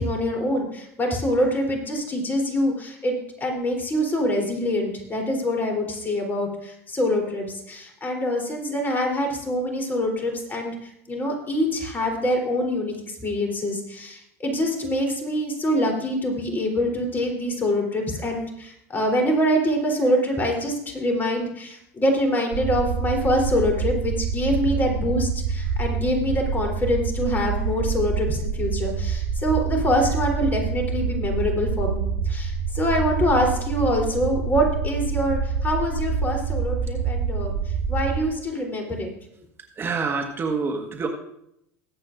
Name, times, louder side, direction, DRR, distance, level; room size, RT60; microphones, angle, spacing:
voice 1, 0.0-39.1, equal, 25° left, 2 dB, 3.5 m, -25 dB
sound 1, 22.5-38.3, right 5 dB, 60° right, 2.0 m, -27 dB
voice 2, 39.7-41.1, right 4 dB, 30° right, 3 dB, 1.5 m, -26 dB
21.5 x 8.2 x 2.6 m, 0.77 s
hypercardioid pair, 85°, 8 cm